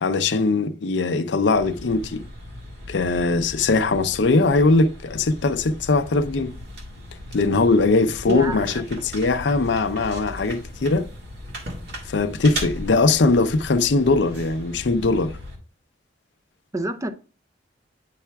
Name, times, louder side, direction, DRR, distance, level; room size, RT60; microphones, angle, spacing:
voice 1, 0.0-2.2 2.9-6.5 7.3-11.1 12.1-15.4, left 3 dB, 70° left, 0.5 m, -20 dB
sound 1, 1.5-15.6, equal, 65° right, 1.8 m, -37 dB
voice 2, 8.2-8.8 16.7-17.1, right 2 dB, 20° right, 0.5 m, -27 dB
9.2 x 5.6 x 2.3 m
head